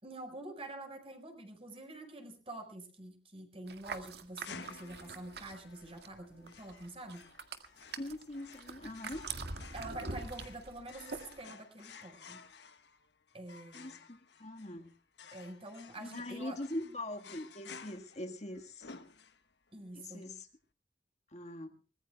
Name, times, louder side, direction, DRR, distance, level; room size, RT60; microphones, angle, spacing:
voice 1, 0.0-7.3 9.7-12.4 13.3-14.0 15.3-16.6 19.7-20.3, right 2 dB, 35° right, 5 dB, 4.9 m, -47 dB
sound 1, 3.7-6.2 6.5-11.4, right 4 dB, 65° right, 1.9 m, -44 dB
sound 2, 4.4-19.7, left 5 dB, 75° left, 1.4 m, -54 dB
voice 2, 8.0-9.2 13.7-14.9 16.0-18.9 19.9-20.5 21.3-21.7, left 1 dB, 40° left, 4 dB, 1.6 m, -42 dB
24.0 x 20.0 x 2.3 m, 0.38 s
head